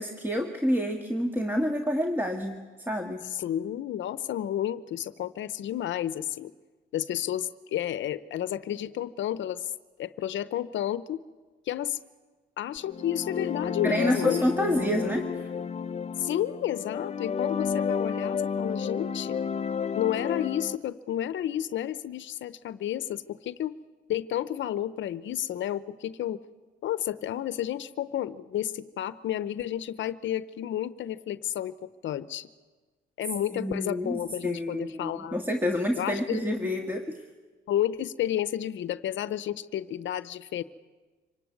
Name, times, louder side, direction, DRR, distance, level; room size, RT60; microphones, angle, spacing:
voice 1, 0.0-2.6 2.9-3.2 13.8-15.3 33.5-37.2, equal, 10° right, 4 dB, 1.7 m, -28 dB
voice 2, 3.2-6.5 6.9-9.7 10.0-11.2 11.7-12.0 12.6-14.4 16.2-19.4 20.0-23.8 24.1-26.4 26.8-32.5 33.2-35.4 36.0-36.5 37.7-40.6, left 11 dB, 70° left, 14 dB, 0.8 m, -31 dB
sound 1, 12.8-20.8, left 6 dB, 30° left, 0.7 m, -31 dB
25.5 x 18.0 x 9.6 m, 1.4 s
cardioid pair, 90°, 20 cm